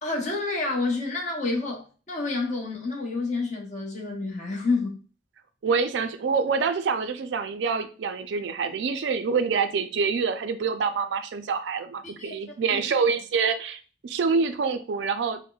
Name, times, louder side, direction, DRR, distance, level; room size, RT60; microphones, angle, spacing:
voice 1, 0.0-5.0 12.0-12.3 12.7-12.8, left 3 dB, 40° left, 0.8 m, -29 dB
voice 2, 5.6-15.4, right 5 dB, 85° right, 0.4 m, -26 dB
4.3 x 2.1 x 2.3 m
head